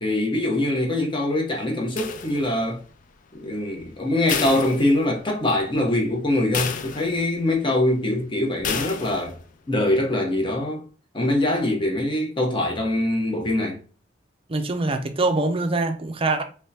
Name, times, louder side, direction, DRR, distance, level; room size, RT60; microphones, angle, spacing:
voice 1, 0.0-2.8 3.3-9.4 9.7-10.8 11.1-13.8, left 1 dB, 25° left, 1.0 m, -23 dB
sound 1, 2.0-2.8 4.3-5.4 5.8-5.9 6.5-7.4 8.6-9.4, left 7 dB, 45° left, 0.4 m, -30 dB
voice 2, 14.5-16.4, right 2 dB, 30° right, 0.5 m, -24 dB
3.5 x 3.3 x 2.7 m
head